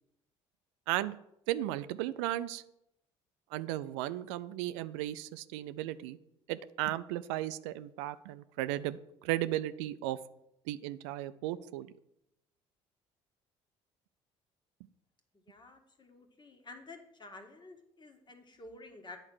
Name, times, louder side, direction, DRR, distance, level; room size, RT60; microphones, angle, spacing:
voice 1, 0.9-1.2 1.5-2.6 3.5-6.2 6.5-10.2 10.7-11.9, right 14 dB, 80° right, 14 dB, 0.4 m, -35 dB
voice 2, 15.4-19.2, left 2 dB, 30° left, 5 dB, 1.7 m, -51 dB
8.8 x 4.4 x 6.3 m, 0.80 s
hypercardioid pair, 60°, 15 cm